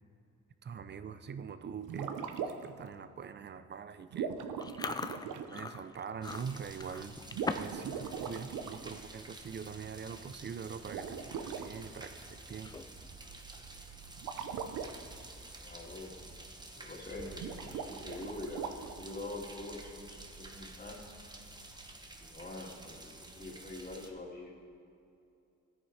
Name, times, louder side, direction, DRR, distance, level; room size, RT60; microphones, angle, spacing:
voice 1, 0.6-2.1 2.5-4.3 5.4-7.2 7.5-12.8, right 6 dB, 35° right, 11 dB, 0.5 m, -43 dB
sound 1, 1.8-2.8 4.1-5.6 7.3-8.8 10.8-11.6 14.2-14.9 17.3-19.1, right 7 dB, 85° right, 0.7 m, -39 dB
Chewing mastication, 4.6-7.8 8.1-8.5 8.9-9.1 9.9-10.0 10.2-10.5 11.0-11.1 12.5-13.1, left 4 dB, 15° left, 0.3 m, -40 dB
sound 2, 6.2-24.1, right 2 dB, 15° right, 1.0 m, -50 dB
voice 2, 15.6-20.1 20.4-21.0 22.2-24.5, left 2 dB, 30° left, -2 dB, 2.4 m, -45 dB
13.5 x 9.6 x 3.3 m, 2.6 s
cardioid pair, 90°, 30 cm